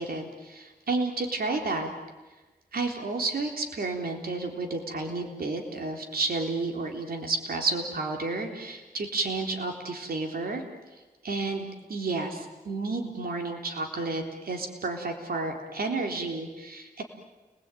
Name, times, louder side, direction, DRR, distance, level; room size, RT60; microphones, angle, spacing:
voice 1, 0.0-1.9 2.7-10.6 11.2-17.0, right 3 dB, 75° right, 3 dB, 3.9 m, -31 dB
29.5 x 21.0 x 9.3 m, 1.2 s
cardioid pair, 60°, 16 cm